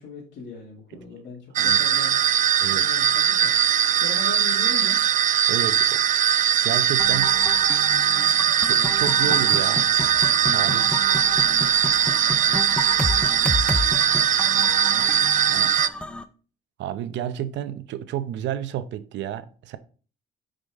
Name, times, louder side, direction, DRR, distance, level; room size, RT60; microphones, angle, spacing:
voice 1, 0.0-5.0 14.4-15.1, left 4 dB, 85° left, 2.5 m, -39 dB
sound 1, 1.6-15.9, right 9 dB, 45° right, 0.4 m, -20 dB
voice 2, 5.5-6.0 6.6-7.4 8.6-9.8 10.5-10.9 15.5-15.7 16.8-19.8, right 11 dB, 85° right, 0.8 m, -31 dB
sound 2, 7.0-16.2, left 2 dB, 5° left, 0.6 m, -31 dB
9.4 x 5.1 x 3.7 m
cardioid pair, 150°, 18 cm